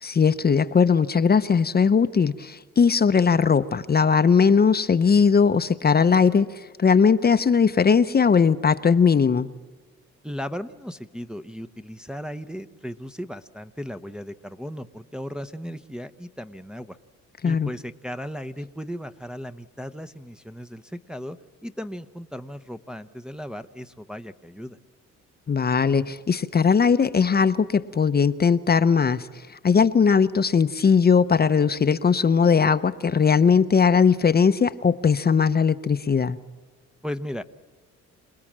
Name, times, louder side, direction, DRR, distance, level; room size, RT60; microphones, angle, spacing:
voice 1, 0.0-9.5 17.4-17.7 25.5-29.3 29.6-36.4, left 6 dB, 30° left, 11 dB, 0.8 m, -19 dB
voice 2, 10.2-17.0 17.4-21.4 21.6-24.8 37.0-37.4, equal, 5° right, 7 dB, 0.8 m, -36 dB
27.5 x 19.5 x 7.4 m, 1.3 s
cardioid pair, 90°, 30 cm